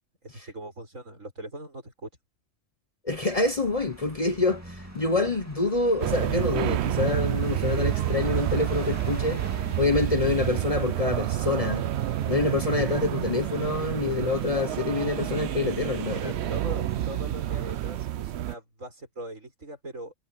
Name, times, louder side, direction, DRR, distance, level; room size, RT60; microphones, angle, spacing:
voice 1, 0.2-2.1 16.1-20.1, right 1 dB, 85° right, 7.6 m, -40 dB
voice 2, 3.0-9.4 9.8-11.9 12.3-16.3, left 3 dB, 30° left, 1.0 m, -26 dB
sound 1, 3.1-17.9, right 1 dB, 10° right, 2.5 m, -43 dB
sound 2, 6.0-18.5, right 13 dB, 65° right, 0.8 m, -29 dB
sound 3, 15.0-17.2, left 1 dB, 50° left, 5.6 m, -52 dB
omnidirectional pair, 1.3 m